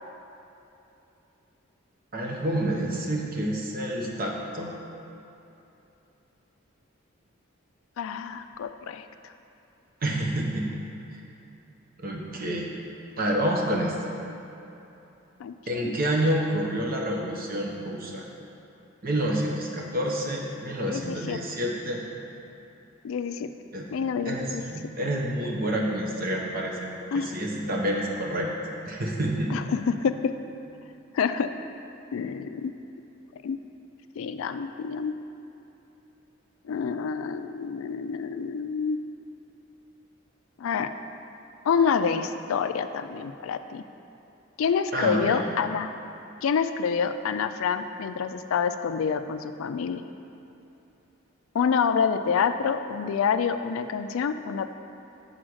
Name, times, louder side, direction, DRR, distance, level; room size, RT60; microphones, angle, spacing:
voice 1, 2.1-4.7 10.0-10.8 12.0-12.7 13.2-14.0 15.7-18.2 19.0-22.0 23.7-23.9 24.2-26.9 27.1-28.5 28.9-29.6 44.9-45.4, right 1 dB, 45° right, -1 dB, 0.9 m, -28 dB
voice 2, 8.0-9.3 15.4-16.0 20.9-21.4 23.0-23.5 23.9-24.6 27.1-27.3 29.5-30.3 31.1-31.7 32.1-32.7 33.4-33.6 34.2-35.1 36.6-39.0 40.6-40.9 41.6-43.8 44.6-45.9 46.4-50.0 51.5-54.8, left 6 dB, 75° left, 10 dB, 0.3 m, -27 dB
6.3 x 4.1 x 6.2 m, 2.9 s
head